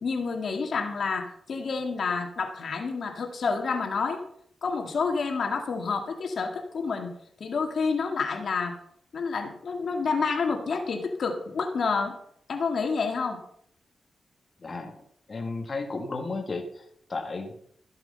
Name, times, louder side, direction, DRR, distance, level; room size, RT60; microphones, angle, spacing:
voice 1, 0.0-4.2 4.6-7.1 7.4-8.8 9.1-12.2 12.5-13.4, left 4 dB, 65° left, 4 dB, 2.0 m, -29 dB
voice 2, 14.6-15.0 15.3-17.5, left 3 dB, 40° left, 3 dB, 1.7 m, -34 dB
13.5 x 7.8 x 5.5 m, 0.67 s
cardioid pair, 80°, 0 cm